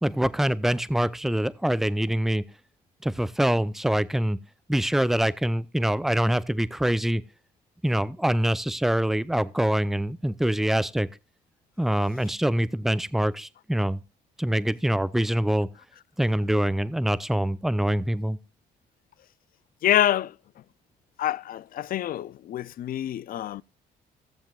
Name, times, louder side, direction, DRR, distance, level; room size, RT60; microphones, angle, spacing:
voice 1, 0.0-2.4 3.0-4.4 4.7-7.2 7.8-11.1 11.8-14.0 14.4-15.7 16.2-18.4, right 1 dB, ahead, 0.6 m, -24 dB
voice 2, 19.8-20.3 21.2-23.6, left 12 dB, 55° left, 0.4 m, -26 dB
17.0 x 7.3 x 2.4 m
supercardioid pair, 65°, 18 cm